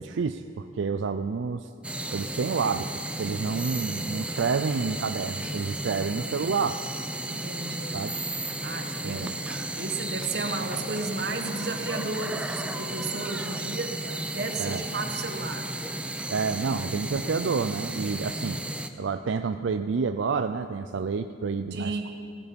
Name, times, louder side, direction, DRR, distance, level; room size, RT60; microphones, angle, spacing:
voice 1, 0.0-1.7 2.1-2.9 3.2-6.8 7.9-8.1 9.0-9.4 14.6-14.8 16.3-18.6 19.0-22.1, right 5 dB, 85° right, 8 dB, 0.4 m, -29 dB
sound 1, 1.8-18.9, right 1 dB, 5° right, 0.7 m, -34 dB
voice 2, 7.3-8.0 8.6-15.7 18.2-18.4 21.7-22.1, right 3 dB, 60° right, 4 dB, 1.6 m, -34 dB
17.0 x 16.5 x 5.3 m, 2.7 s
head